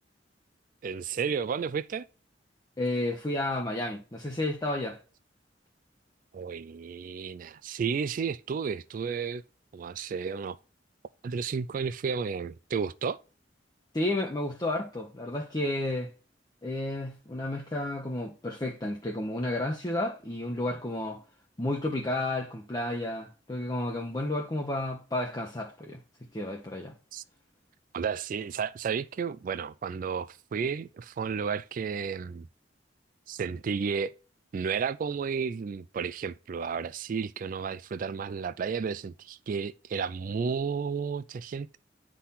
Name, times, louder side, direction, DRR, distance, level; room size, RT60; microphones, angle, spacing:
voice 1, 0.8-2.1 6.3-9.4 9.7-10.6 11.2-13.2 27.1-27.2 27.9-32.5 33.3-34.1 34.5-41.8, right 6 dB, 45° right, 0.3 m, -32 dB
voice 2, 2.8-5.0 13.9-16.1 16.6-21.2 21.6-26.0 26.3-26.9, left 1 dB, 20° left, 0.8 m, -31 dB
9.8 x 3.8 x 4.1 m
head